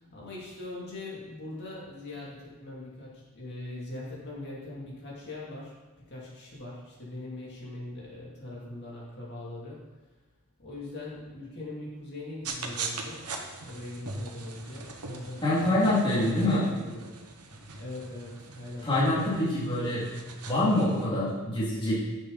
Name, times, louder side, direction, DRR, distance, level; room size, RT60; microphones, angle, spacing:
voice 1, 0.1-5.7 6.1-9.8 10.6-13.3 13.6-15.8 16.0-17.2 17.8-19.2, left 2 dB, 50° left, -6 dB, 2.8 m, -41 dB
sound 1, 12.4-21.0, right 4 dB, 85° right, 1.2 m, -41 dB
voice 2, 15.4-16.7 18.8-20.1 20.4-22.0, left 1 dB, 25° left, -9 dB, 2.4 m, -25 dB
10.5 x 7.1 x 4.1 m, 1.2 s
head